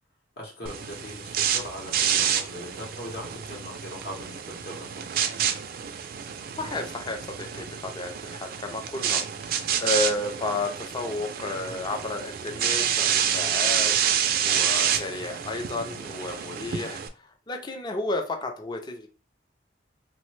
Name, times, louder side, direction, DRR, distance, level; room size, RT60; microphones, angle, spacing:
voice 1, 0.4-5.3, equal, 65° left, -1 dB, 0.8 m, -40 dB
sound 1, 0.7-17.1, right 8 dB, 55° right, 0.3 m, -28 dB
voice 2, 6.6-9.2 9.6-19.1, left 2 dB, 25° left, 4 dB, 0.4 m, -32 dB
3.1 x 2.1 x 3.1 m, 0.35 s
head